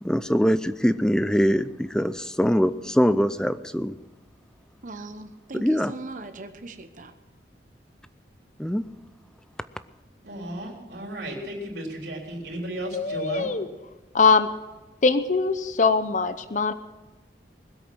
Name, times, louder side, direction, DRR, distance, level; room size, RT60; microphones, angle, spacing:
voice 1, 0.0-4.0 5.5-5.9 8.6-8.9, equal, 5° left, 13 dB, 0.4 m, -23 dB
voice 2, 4.8-7.1, right 2 dB, 45° right, 8 dB, 1.0 m, -39 dB
voice 3, 10.2-13.5, right 1 dB, 75° right, -1 dB, 3.6 m, -34 dB
voice 4, 12.9-13.7 14.1-14.5 15.0-16.7, left 4 dB, 45° left, 12 dB, 0.6 m, -22 dB
20.5 x 8.2 x 6.2 m, 1.2 s
head